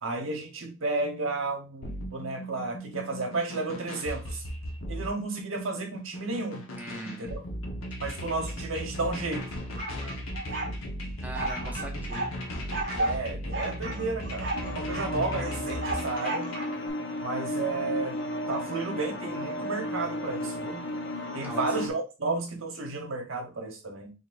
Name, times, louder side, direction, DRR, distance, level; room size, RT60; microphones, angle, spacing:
voice 1, 0.0-4.4 4.9-6.6 7.1-7.4 8.0-9.5 11.6-11.7 13.0-16.5 17.2-18.2 18.5-20.9 21.3-24.1, right 3 dB, 80° right, 1.1 m, -32 dB
sound 1, 1.8-16.8, equal, 80° left, 1.1 m, -37 dB
voice 2, 6.8-7.4 11.2-12.3 21.4-21.8, right 1 dB, 10° right, 0.7 m, -40 dB
sound 2, 9.8-10.7 11.3-12.3 12.7-13.2 13.5-15.1 15.4-16.9, right 2 dB, 55° right, 1.3 m, -33 dB
sound 3, 14.5-21.9, left 1 dB, 55° left, 0.6 m, -34 dB
4.1 x 3.8 x 2.6 m
head